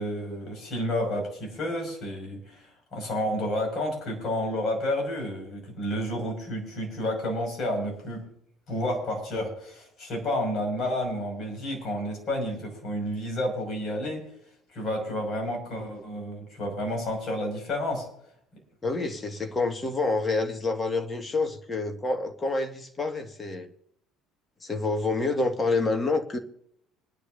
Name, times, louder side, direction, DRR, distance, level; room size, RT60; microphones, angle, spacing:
voice 1, 0.0-8.3 8.7-14.3 14.7-18.1, left 1 dB, 45° left, 6.1 m, -30 dB
voice 2, 18.8-23.7 24.6-26.4, left 3 dB, 25° left, 1.9 m, -28 dB
26.0 x 10.0 x 2.7 m
figure-of-eight pair, 60°, 0 cm